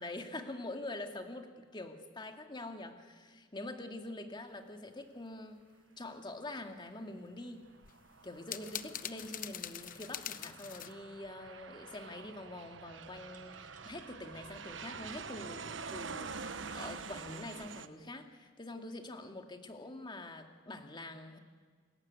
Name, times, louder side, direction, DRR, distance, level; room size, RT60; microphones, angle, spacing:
voice 1, 0.0-5.7 6.0-7.7 8.2-21.4, left 2 dB, 25° left, 5 dB, 2.3 m, -45 dB
Aircraft, 7.7-17.9, right 5 dB, 90° right, 1.2 m, -47 dB
sound 1, 7.8-10.9, left 10 dB, 45° left, 0.9 m, -43 dB
sound 2, 13.0-14.1 14.8-14.9 15.8-16.1, right 6 dB, 45° right, 3.7 m, -65 dB
30.0 x 20.5 x 9.6 m, 1.5 s
head